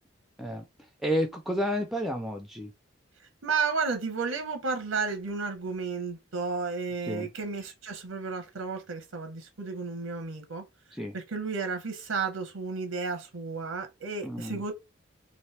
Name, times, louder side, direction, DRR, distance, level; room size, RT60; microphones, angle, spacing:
voice 1, 1.0-2.7 7.0-7.3 10.9-11.2 14.2-14.6, equal, ahead, 0.3 m, -30 dB
voice 2, 3.2-10.6 11.1-14.7, right 4 dB, 90° right, 0.8 m, -32 dB
3.0 x 2.5 x 3.2 m
head